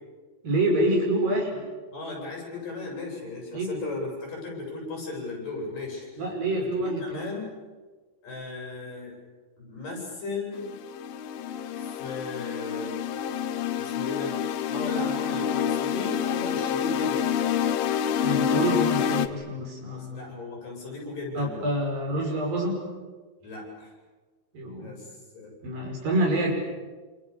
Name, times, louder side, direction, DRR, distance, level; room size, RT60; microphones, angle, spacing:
voice 1, 0.4-1.5 3.5-3.7 6.2-7.2 18.2-20.2 21.3-22.8 24.5-24.9 25.6-26.5, right 1 dB, 75° right, 1 dB, 7.4 m, -27 dB
voice 2, 1.9-6.2 6.5-7.6 8.2-9.1 9.6-10.7 11.8-13.0 13.8-14.3 14.7-17.3 19.9-21.7 23.4-23.9 24.8-25.5, left 3 dB, 65° left, -1 dB, 9.6 m, -36 dB
sound 1, 10.6-19.3, left 8 dB, 90° left, 2.9 m, -27 dB
27.5 x 27.5 x 7.1 m, 1.4 s
omnidirectional pair, 4.1 m